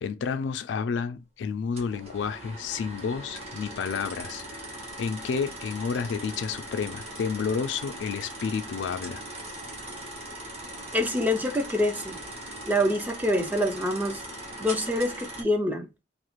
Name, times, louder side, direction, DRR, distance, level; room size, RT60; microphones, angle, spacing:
voice 1, 0.0-4.4 5.0-9.2, left 6 dB, 70° left, 0.3 m, -30 dB
sound 1, 1.8-15.4, right 1 dB, 35° right, 0.9 m, -40 dB
voice 2, 10.9-12.2 12.7-14.2 14.6-15.9, left 1 dB, 10° right, 0.4 m, -26 dB
2.4 x 2.0 x 2.9 m
head